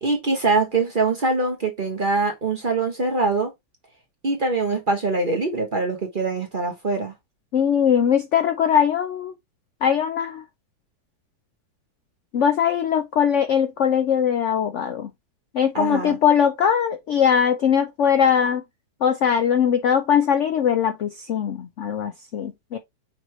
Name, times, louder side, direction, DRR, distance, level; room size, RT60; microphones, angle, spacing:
voice 1, 0.0-3.5 4.2-7.1 15.7-16.2, right 3 dB, 40° right, 0.8 m, -23 dB
voice 2, 7.5-9.3 9.8-10.4 12.3-15.1 15.5-18.6 19.0-22.8, left 8 dB, 90° left, 0.6 m, -21 dB
5.7 x 3.0 x 3.1 m
omnidirectional pair, 2.0 m